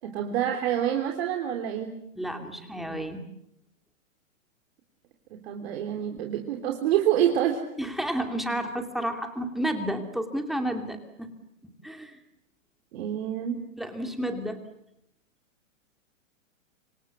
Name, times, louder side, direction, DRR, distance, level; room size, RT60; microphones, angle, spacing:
voice 1, 0.0-1.9 5.3-7.6 12.9-13.6, right 10 dB, 50° right, 3 dB, 3.5 m, -27 dB
voice 2, 2.2-3.2 7.8-11.3 11.8-12.2 13.8-14.6, right 1 dB, ahead, 5 dB, 2.6 m, -31 dB
26.5 x 26.0 x 8.2 m, 0.77 s
hypercardioid pair, 150°, 41 cm